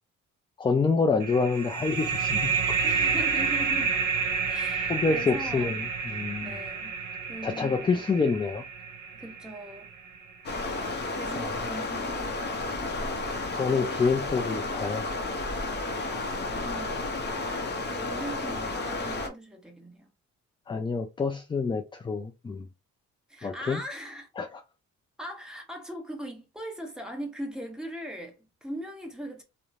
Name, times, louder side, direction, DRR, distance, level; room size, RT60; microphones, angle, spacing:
voice 1, 0.6-2.5 4.9-6.6 7.4-8.6 11.4-11.5 13.5-15.1 20.7-22.7 23.4-23.8 24.4-24.5, left 4 dB, 15° left, 0.3 m, -27 dB
sound 1, 1.2-10.5, right 5 dB, 75° right, 0.7 m, -29 dB
voice 2, 2.8-3.9 4.4-5.7 6.1-7.9 9.1-9.9 11.1-13.1 15.8-17.2 17.9-20.1 23.3-24.3 25.2-29.4, equal, ahead, 1.0 m, -40 dB
Stream, 10.4-19.3, left 2 dB, 35° left, 0.7 m, -32 dB
3.0 x 2.1 x 2.5 m
cardioid pair, 90°, 30 cm